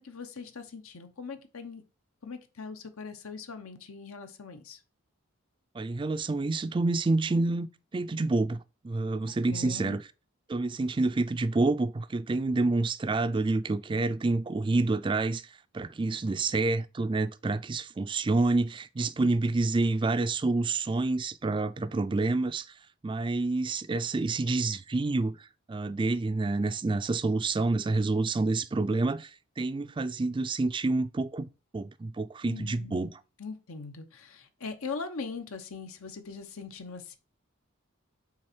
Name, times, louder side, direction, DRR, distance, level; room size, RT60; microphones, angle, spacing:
voice 1, 0.0-1.8 2.2-4.8 9.2-10.0 32.4-33.1 33.4-37.2, left 4 dB, 85° left, 1.0 m, -41 dB
voice 2, 5.7-7.7 7.9-10.0 10.5-22.7 23.0-31.5 31.7-33.1, right 3 dB, 25° right, 0.3 m, -28 dB
6.3 x 4.2 x 4.4 m
head